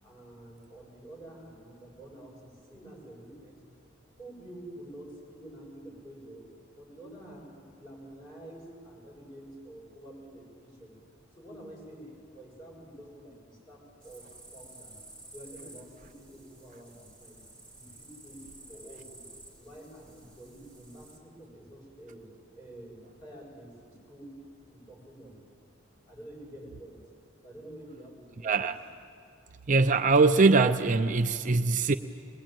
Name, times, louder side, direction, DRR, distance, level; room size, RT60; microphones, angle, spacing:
voice 1, 0.0-3.6 4.2-6.4 6.8-11.0 11.3-15.0 15.3-17.4 17.7-19.2 19.6-22.3 22.6-24.4 24.7-25.4 26.0-27.0 27.4-28.7, right 1 dB, 25° left, -3 dB, 8.0 m, -48 dB
sound 1, 14.0-21.2, right 2 dB, 5° left, 3.0 m, -52 dB
voice 2, 28.4-28.8 29.7-31.9, right 3 dB, 40° right, 8 dB, 0.6 m, -22 dB
22.0 x 21.5 x 9.1 m, 2.5 s
head